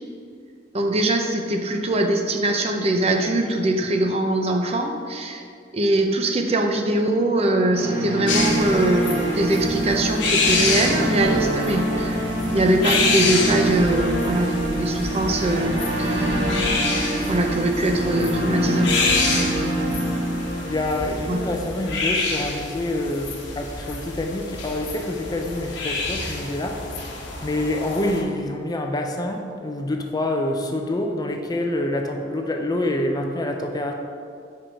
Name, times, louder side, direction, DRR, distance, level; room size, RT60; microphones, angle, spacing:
voice 1, 0.7-5.4 5.7-16.4 17.3-19.1 19.4-19.5 21.3-21.5, right 1 dB, 35° right, 4 dB, 0.5 m, -22 dB
sound 1, 7.7-21.8, right 1 dB, 80° right, 1.4 m, -25 dB
sound 2, 8.3-28.2, left 3 dB, 70° left, 1.1 m, -28 dB
voice 2, 20.7-26.8 27.4-33.9, left 1 dB, 20° left, 3 dB, 0.5 m, -26 dB
6.1 x 4.7 x 4.5 m, 2.3 s
head